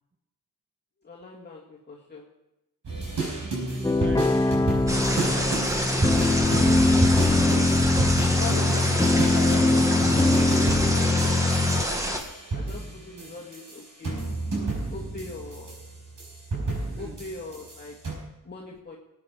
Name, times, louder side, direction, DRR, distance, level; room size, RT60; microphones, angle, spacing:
voice 1, 1.0-2.3 8.2-11.9 12.5-14.3 14.9-15.8 17.0-18.0 18.4-19.0, left 3 dB, 30° left, -4 dB, 1.9 m, -41 dB
sound 1, 2.8-18.1, right 2 dB, 65° right, 5.2 m, -31 dB
voice 2, 3.4-7.2 13.1-13.4 16.9-17.2, right 3 dB, 35° right, 7 dB, 1.4 m, -43 dB
sound 2, 3.8-11.8, left 2 dB, 10° left, 0.4 m, -22 dB
sound 3, 4.9-12.2, equal, 10° right, 1.8 m, -28 dB
20.0 x 8.7 x 4.9 m, 0.94 s
wide cardioid pair, 110°, 34 cm